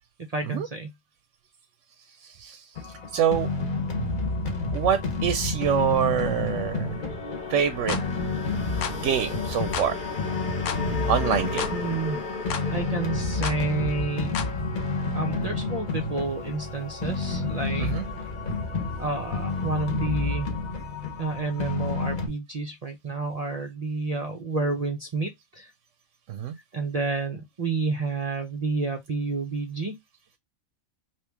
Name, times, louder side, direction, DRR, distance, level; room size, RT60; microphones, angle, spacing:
voice 1, 0.3-0.9 11.7-12.3 12.7-14.6 15.1-17.9 19.0-20.5 21.2-25.7 26.7-30.0, right 3 dB, 40° right, 0.6 m, -30 dB
voice 2, 2.2-3.5 4.7-6.9 7.5-8.0 8.9-10.0 11.1-11.7 17.8-18.0 26.3-26.5, right 8 dB, 75° right, 0.9 m, -26 dB
sound 1, 2.8-22.3, left 3 dB, 40° left, 1.1 m, -29 dB
sound 2, 7.9-8.1 8.8-9.0 9.7-9.9 10.6-10.8 11.6-11.8 12.5-12.7 13.4-13.6 14.3-14.5, left 7 dB, 75° left, 1.0 m, -31 dB
3.0 x 3.0 x 3.4 m
omnidirectional pair, 1.3 m